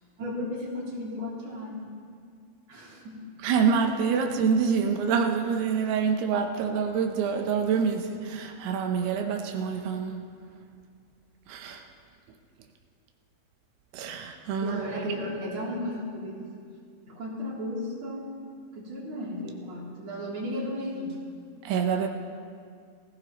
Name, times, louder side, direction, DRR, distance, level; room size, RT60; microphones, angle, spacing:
voice 1, 0.2-1.9 2.7-3.2 14.6-16.5 17.0-18.3 18.7-21.2, left 1 dB, 35° right, -7 dB, 3.7 m, -34 dB
voice 2, 3.4-10.3 11.5-11.8 13.9-14.8 21.6-22.1, right 6 dB, 90° right, 4 dB, 2.9 m, -26 dB
21.0 x 16.0 x 3.0 m, 2.2 s
omnidirectional pair, 4.5 m